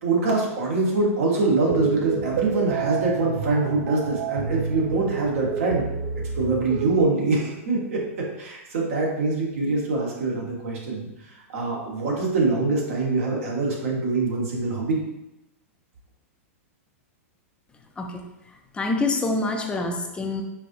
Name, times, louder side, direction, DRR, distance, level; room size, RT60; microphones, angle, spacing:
voice 1, 0.0-5.8 6.2-11.1 11.5-15.0, right 3 dB, 70° right, -2 dB, 1.2 m, -24 dB
sound 1, 1.7-7.0, right 6 dB, 55° right, 0.4 m, -29 dB
voice 2, 18.7-20.4, left 3 dB, 15° left, 3 dB, 0.4 m, -26 dB
4.6 x 2.7 x 2.6 m, 0.91 s
hypercardioid pair, 130°, 8 cm